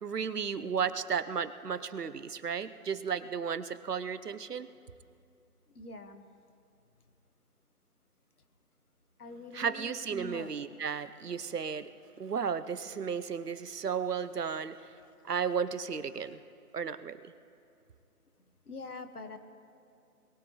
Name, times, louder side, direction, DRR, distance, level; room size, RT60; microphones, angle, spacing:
voice 1, 0.0-4.7 9.5-11.9 12.2-14.9 15.2-16.4 16.7-17.3, right 6 dB, 80° right, 13 dB, 0.9 m, -34 dB
voice 2, 5.7-6.2 9.2-10.8 18.6-19.4, left 2 dB, 70° left, 8 dB, 1.5 m, -44 dB
22.0 x 16.5 x 3.1 m, 2.5 s
figure-of-eight pair, 165°, 46 cm